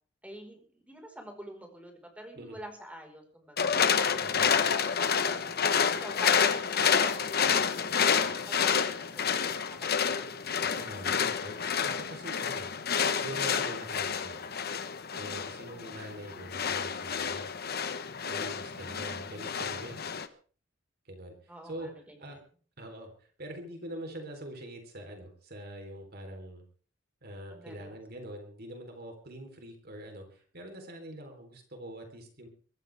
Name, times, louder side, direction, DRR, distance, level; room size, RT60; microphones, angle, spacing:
voice 1, 0.2-3.8 4.2-8.1 8.5-10.4 12.5-13.0 15.7-16.1 18.7-19.1 21.5-22.4 27.5-28.0, equal, 5° right, 3 dB, 4.9 m, -49 dB
sound 1, 3.6-20.3, left 7 dB, 55° left, 1.2 m, -29 dB
voice 2, 4.2-4.5 10.6-12.7 13.1-14.5 15.1-17.5 18.3-20.0 21.1-21.9 22.2-22.4 22.8-26.6 27.2-32.5, right 1 dB, 55° right, 4 dB, 3.9 m, -44 dB
23.0 x 14.5 x 3.6 m, 0.42 s
head